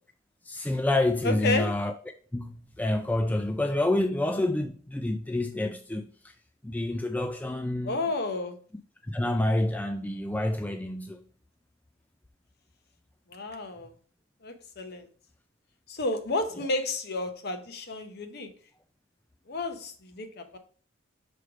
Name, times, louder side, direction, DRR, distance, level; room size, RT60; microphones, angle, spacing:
voice 1, 0.4-1.9 2.3-6.3 6.6-8.0 9.1-11.2 16.6-16.7, left 1 dB, 10° left, 0.3 m, -28 dB
voice 2, 1.2-1.7 7.8-8.6 13.3-13.9 14.4-15.1 15.9-18.5 19.5-20.6, left 2 dB, 55° left, 0.9 m, -31 dB
6.2 x 3.3 x 4.7 m
head